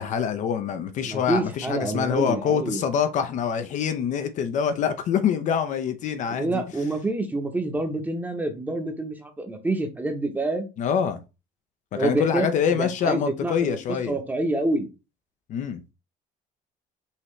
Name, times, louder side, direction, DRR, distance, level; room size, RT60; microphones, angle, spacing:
voice 1, 0.0-6.6 10.8-11.2 11.9-14.2 15.5-15.8, left 7 dB, 50° left, 0.6 m, -25 dB
voice 2, 1.0-2.8 6.3-10.7 11.9-13.8 14.1-14.9, right 2 dB, 10° right, 0.9 m, -27 dB
5.6 x 2.9 x 3.2 m
cardioid pair, 145°, 16 cm